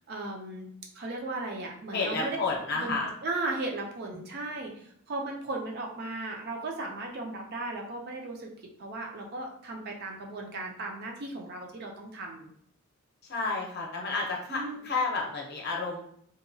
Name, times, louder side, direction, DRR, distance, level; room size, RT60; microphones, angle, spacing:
voice 1, 0.1-0.7 0.9-2.4 2.7-8.5 8.8-12.5 14.5-14.8, right 2 dB, 45° right, 0 dB, 0.4 m, -36 dB
voice 2, 1.9-3.1 13.3-16.0, left 3 dB, 45° left, -1 dB, 0.6 m, -31 dB
2.8 x 2.2 x 2.6 m, 0.66 s
head